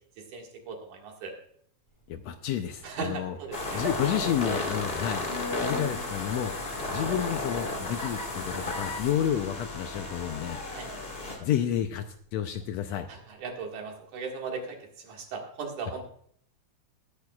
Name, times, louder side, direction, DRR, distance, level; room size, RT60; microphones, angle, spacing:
voice 1, 0.2-1.3 2.8-3.8 10.7-10.9 13.1-14.8 15.0-16.0, right 4 dB, 75° right, 1 dB, 3.3 m, -37 dB
sound 1, 1.9-12.3 12.6-12.7, left 1 dB, 10° left, 3.0 m, -45 dB
voice 2, 2.1-3.4 3.7-5.2 5.6-6.5 6.9-10.6 11.4-12.0 12.3-13.1, left 10 dB, 75° left, 7 dB, 1.7 m, -30 dB
sound 2, 3.5-11.4, left 2 dB, 25° left, 1.4 m, -33 dB
20.0 x 9.9 x 2.4 m, 0.65 s
omnidirectional pair, 3.5 m